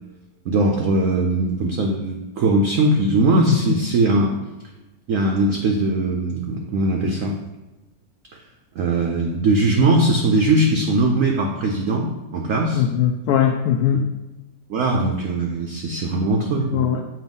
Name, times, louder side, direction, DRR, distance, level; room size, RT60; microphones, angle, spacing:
voice 1, 0.5-4.4 5.1-7.4 8.7-12.8 14.7-16.9, right 2 dB, 65° right, 2 dB, 0.8 m, -20 dB
voice 2, 3.5-3.8 12.7-14.1 16.7-17.0, left 9 dB, 75° left, 4 dB, 0.9 m, -20 dB
7.6 x 2.9 x 5.3 m, 1.0 s
omnidirectional pair, 2.0 m